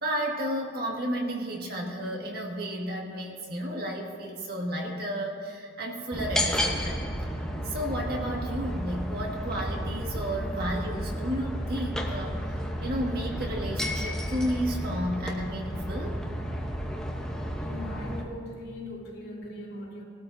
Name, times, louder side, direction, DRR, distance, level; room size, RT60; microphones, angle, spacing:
voice 1, 0.0-7.0 7.6-12.4 12.8-16.2, equal, 50° right, -1 dB, 1.9 m, -32 dB
sound 1, 6.1-18.2, equal, 5° left, 0.9 m, -32 dB
voice 2, 17.6-20.0, left 1 dB, 90° left, -4 dB, 4.1 m, -40 dB
20.5 x 13.0 x 2.7 m, 2.1 s
head